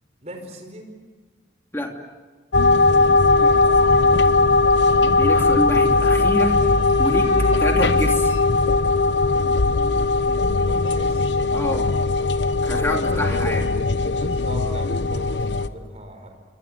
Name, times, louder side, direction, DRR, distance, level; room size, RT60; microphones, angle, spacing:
voice 1, 0.2-0.9 3.3-4.5 10.7-11.3 12.7-13.7 14.1-16.3, equal, 35° right, 4 dB, 5.3 m, -38 dB
sound 1, 2.5-15.7, left 3 dB, 85° left, 1.0 m, -19 dB
Wind instrument woodwind instrument, 5.0-10.0, left 3 dB, 30° left, 4.0 m, -31 dB
voice 2, 5.2-7.3 7.6-8.3 11.5-11.9 12.6-13.6, left 1 dB, 15° left, 2 dB, 2.7 m, -27 dB
27.0 x 25.0 x 8.0 m, 1.4 s
head